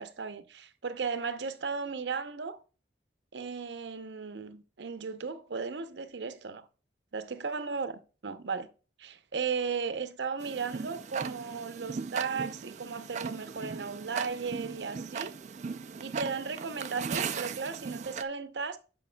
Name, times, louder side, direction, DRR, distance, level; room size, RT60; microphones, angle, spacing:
voice 1, 0.0-2.6 3.3-6.6 7.1-7.9 8.2-8.7 9.0-15.4 16.0-18.8, right 5 dB, 75° right, 0.7 m, -35 dB
Tick-tock, 10.4-18.2, right 6 dB, 40° right, 0.4 m, -38 dB
9.4 x 5.2 x 2.2 m
head